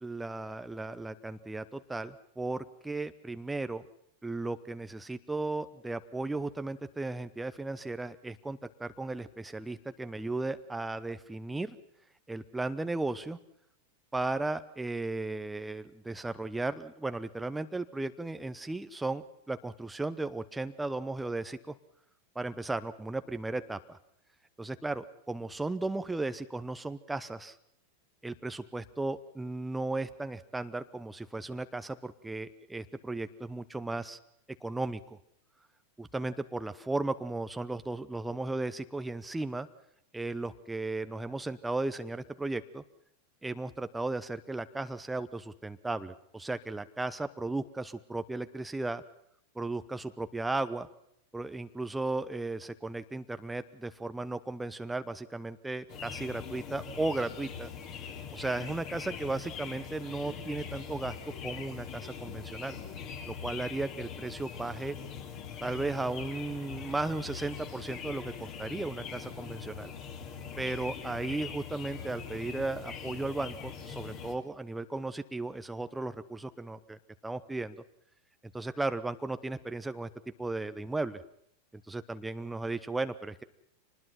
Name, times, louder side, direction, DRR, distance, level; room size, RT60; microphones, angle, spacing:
voice 1, 0.0-3.8 4.2-11.8 12.3-13.4 14.1-21.8 22.3-24.0 24.6-27.6 28.2-34.2 34.6-35.2 36.0-39.7 40.1-42.8 43.4-49.0 49.5-50.9 51.3-57.7 58.3-61.2 61.4-62.8 63.3-65.0 65.6-69.9 70.6-77.8 78.5-80.1 80.4-81.2 81.9-83.4, right 2 dB, 5° right, 10 dB, 0.8 m, -35 dB
sound 1, 55.9-74.3, left 7 dB, 40° left, 3.7 m, -42 dB
25.5 x 20.0 x 5.8 m, 0.72 s
figure-of-eight pair, 90°, 0 cm